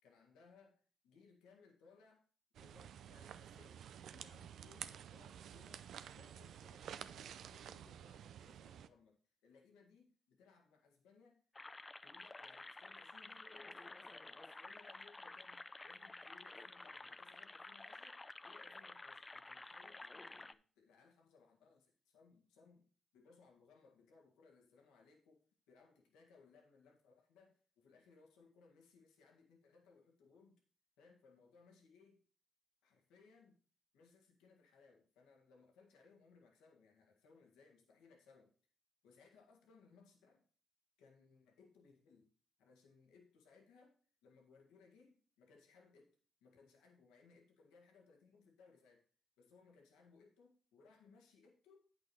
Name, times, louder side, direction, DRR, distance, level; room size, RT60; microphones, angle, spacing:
voice 1, 0.0-2.2 2.6-3.8 4.1-11.4 12.0-30.6 31.0-32.2 32.8-33.6 33.9-38.5 39.0-40.5 41.0-42.3 42.6-49.0 49.4-51.8, left 4 dB, 90° left, 1 dB, 1.8 m, -66 dB
sound 1, 2.5-8.9, right 9 dB, 75° right, 0.5 m, -51 dB
sound 2, 11.5-20.5, left 2 dB, 25° left, 0.5 m, -52 dB
8.7 x 6.1 x 4.8 m, 0.41 s
supercardioid pair, 55°, 0 cm